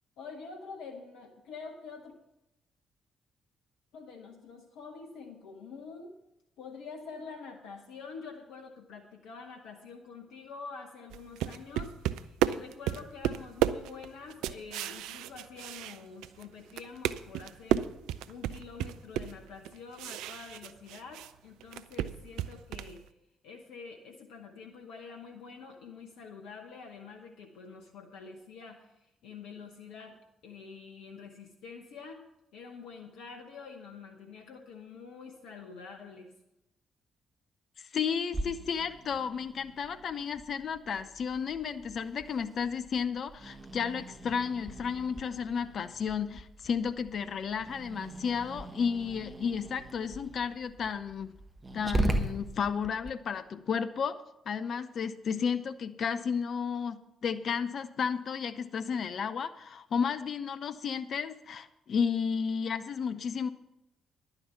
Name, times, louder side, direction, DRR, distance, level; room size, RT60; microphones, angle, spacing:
voice 1, 0.2-2.2 3.9-6.2 6.6-17.9 18.3-23.1 23.4-30.2 30.4-32.2 32.5-36.3, left 5 dB, 70° left, 3 dB, 0.9 m, -47 dB
sound 1, 11.1-16.4 16.7-21.3 21.6-23.0, right 11 dB, 70° right, 0.3 m, -33 dB
voice 2, 37.8-51.3 51.7-54.2 54.5-63.5, left 6 dB, 55° left, 11 dB, 0.5 m, -33 dB
Growling, 38.3-53.1, right 1 dB, 25° right, 1.4 m, -39 dB
11.0 x 9.8 x 5.7 m, 0.88 s
figure-of-eight pair, 40°, 0 cm